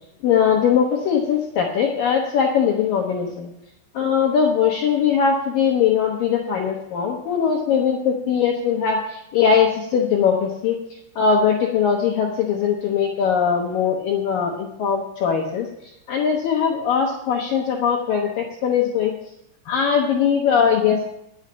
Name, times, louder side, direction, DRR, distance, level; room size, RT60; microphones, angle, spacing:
voice 1, 0.2-3.5 4.0-10.8 11.2-15.7 16.1-19.1 19.7-21.0, left 7 dB, 85° left, 0 dB, 1.9 m, -20 dB
11.0 x 7.3 x 8.4 m, 0.81 s
omnidirectional pair, 5.8 m